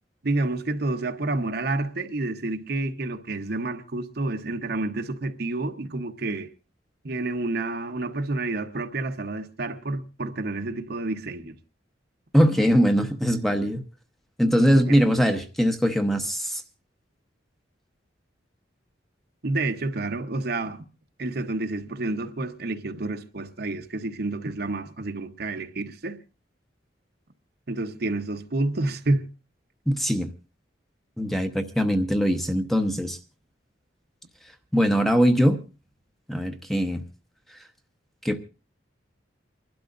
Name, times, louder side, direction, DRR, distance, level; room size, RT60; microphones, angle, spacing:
voice 1, 0.2-6.5 7.0-11.5 14.7-15.0 19.4-20.8 21.2-26.2 27.7-29.3, right 2 dB, 55° right, 1.0 m, -29 dB
voice 2, 12.3-13.8 14.4-16.6 29.9-30.3 31.2-33.2 34.7-35.6 36.3-37.0 38.2-38.4, equal, ahead, 0.9 m, -21 dB
29.0 x 12.0 x 2.5 m
head